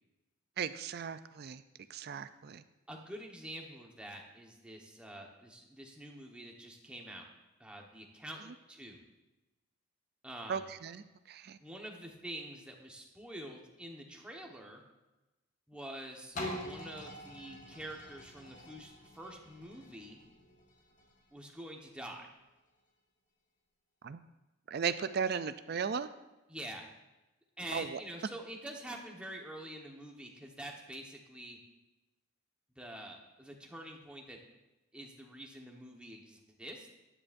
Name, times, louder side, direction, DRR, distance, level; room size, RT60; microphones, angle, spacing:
voice 1, 0.6-1.6 1.9-2.6 10.5-11.6 24.0-24.2 24.7-26.1 27.7-28.0, right 6 dB, 50° right, 12 dB, 0.4 m, -36 dB
voice 2, 2.9-7.2 7.6-9.0 10.2-10.7 11.6-14.8 15.7-20.2 21.3-22.3 26.5-26.9 27.6-31.6 32.8-34.4 34.9-36.9, right 1 dB, 5° right, 0 dB, 1.2 m, -46 dB
sound 1, 16.3-22.1 22.7-22.8, left 1 dB, 40° left, 1.5 m, -46 dB
15.0 x 10.0 x 2.6 m, 1.0 s
head